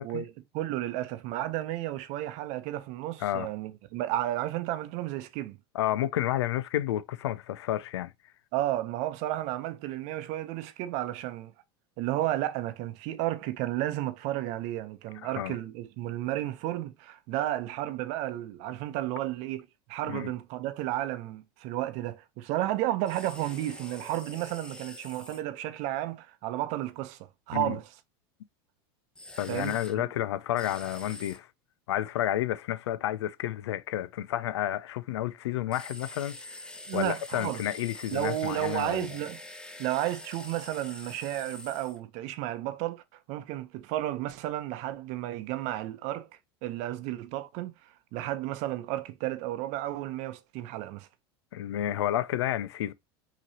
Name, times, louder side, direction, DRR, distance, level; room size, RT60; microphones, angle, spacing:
voice 1, 0.0-5.6 8.5-11.5 12.0-27.9 29.5-30.1 36.9-37.6 38.1-39.4 39.8-43.0 43.3-46.3 46.6-47.7 48.1-51.1, right 14 dB, 60° right, 0.8 m, -32 dB
voice 2, 5.7-8.1 15.2-15.6 20.1-20.3 27.5-27.8 29.4-31.5 31.9-39.1 51.5-52.9, left 12 dB, 85° left, 0.5 m, -31 dB
sound 1, 23.0-25.4 29.2-29.9 30.6-31.4 35.7-42.0, left 1 dB, 5° left, 0.8 m, -45 dB
5.7 x 3.1 x 2.8 m
hypercardioid pair, 105°, 14 cm